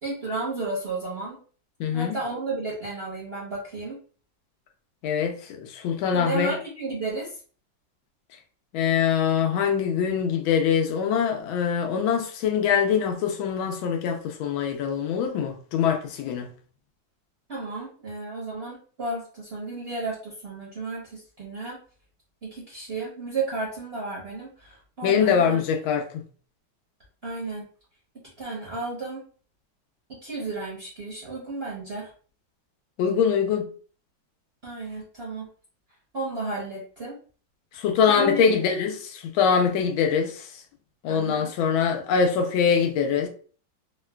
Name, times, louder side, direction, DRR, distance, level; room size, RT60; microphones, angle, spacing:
voice 1, 0.0-1.4 1.9-4.0 6.1-7.4 17.5-21.8 22.4-25.6 27.2-27.7 28.4-29.2 30.1-32.1 34.6-35.5 36.1-37.1 38.1-38.5 41.1-41.5, right 3 dB, 50° right, 0.8 m, -33 dB
voice 2, 1.8-2.2 5.0-6.6 8.7-16.5 25.0-26.2 33.0-33.7 37.7-40.5 41.0-43.3, left 7 dB, 85° left, 1.4 m, -23 dB
3.7 x 2.2 x 2.2 m
omnidirectional pair, 2.1 m